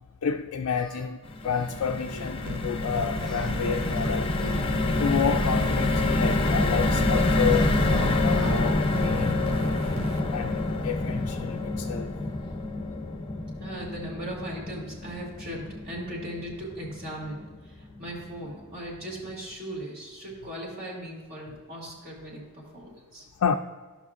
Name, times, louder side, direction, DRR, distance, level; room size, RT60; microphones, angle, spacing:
voice 1, 0.2-4.3 5.0-9.5 10.3-12.1 23.4-23.5, left 6 dB, 70° left, 0.4 m, -30 dB
Singing, 0.8-1.1 1.4-1.8 2.1-2.4 3.1-4.7 5.3-7.1 7.4-8.6, equal, 5° left, 1.1 m, -43 dB
sound 1, 1.2-17.6 18.0-18.1 18.3-18.6, left 2 dB, 25° left, 0.6 m, -27 dB
sound 2, 2.5-10.2, right 5 dB, 60° right, 0.4 m, -40 dB
voice 2, 13.6-23.3, right 1 dB, 45° right, 2.3 m, -38 dB
13.5 x 5.9 x 2.5 m
head